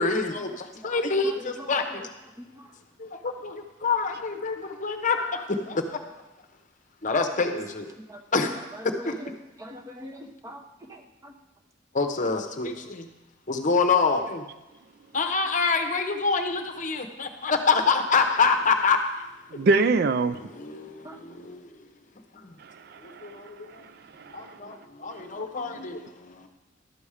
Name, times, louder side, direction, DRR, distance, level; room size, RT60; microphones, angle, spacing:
voice 1, 0.0-2.0 3.0-6.0 7.0-7.9 8.3-8.5 9.0-9.1 11.9-13.1 13.5-14.4 15.1-19.0 19.5-19.6 20.5-21.7 22.3-22.5 23.2-23.8 24.3-26.5, left 4 dB, 40° left, 5 dB, 0.8 m, -26 dB
voice 2, 1.2-2.0 2.4-2.7 8.1-9.3 9.6-11.3 21.0-21.2, equal, 15° right, 4 dB, 0.9 m, -42 dB
voice 3, 19.5-20.4 22.6-23.4 23.7-23.8 24.2-24.6, right 3 dB, 55° right, 12 dB, 0.4 m, -25 dB
12.0 x 7.0 x 4.9 m, 1.0 s
head